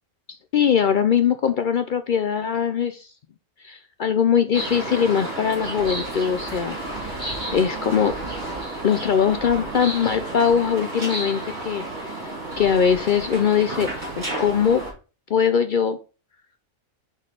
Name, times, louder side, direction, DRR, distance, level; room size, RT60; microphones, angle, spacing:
voice 1, 0.3-3.1 3.6-6.8 7.0-8.1 8.8-13.9 14.2-14.8 15.3-16.0, left 7 dB, 70° left, 9 dB, 0.4 m, -21 dB
sound 1, 4.5-14.9, right 1 dB, 35° right, 3.1 m, -31 dB
6.3 x 4.0 x 5.0 m, 0.34 s
omnidirectional pair, 1.4 m